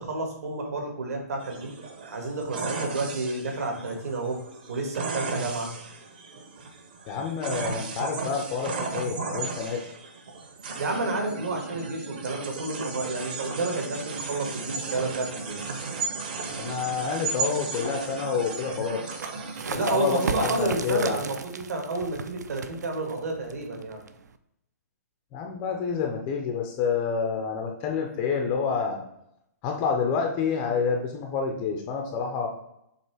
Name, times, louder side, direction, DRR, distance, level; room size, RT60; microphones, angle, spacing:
voice 1, 0.0-1.7 2.1-4.4 4.7-5.7 10.8-15.7 19.7-24.0, right 2 dB, 60° right, 2 dB, 1.9 m, -30 dB
sound 1, 1.4-20.6, right 4 dB, 35° right, 0.7 m, -35 dB
voice 2, 7.1-9.9 16.5-19.0 19.7-21.2 25.3-29.0 29.6-32.5, left 5 dB, 10° left, 2 dB, 0.3 m, -28 dB
sound 2, 19.0-24.4, right 5 dB, 80° right, 0.6 m, -36 dB
7.4 x 2.9 x 4.7 m, 0.80 s
hypercardioid pair, 180°, 9 cm